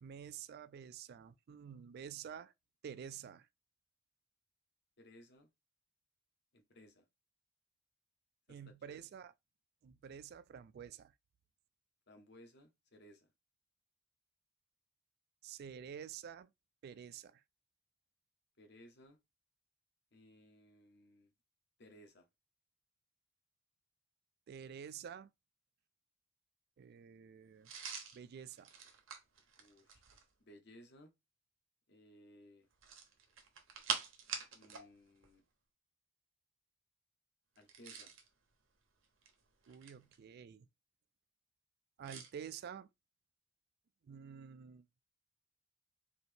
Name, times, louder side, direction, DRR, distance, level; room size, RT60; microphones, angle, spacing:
voice 1, 0.0-2.5 2.8-3.5 8.5-9.3 9.8-11.1 15.4-16.5 16.8-17.4 24.5-25.3 26.8-27.7 28.1-28.7 39.7-40.7 42.0-42.9 44.0-44.9, right 8 dB, 50° right, 0.3 m, -49 dB
voice 2, 5.0-5.5 6.5-7.0 8.5-9.0 12.1-13.3 18.6-19.2 20.1-21.3 21.8-22.3 29.6-30.0 30.4-31.1 31.9-32.7 34.5-35.4 37.6-38.1, left 1 dB, 55° left, 1.1 m, -60 dB
sound 1, 27.6-30.3 32.7-34.9 35.2-35.3 37.6-38.3 39.0-40.1 42.0-42.3, right 6 dB, 70° right, 1.0 m, -44 dB
4.1 x 2.7 x 3.4 m
head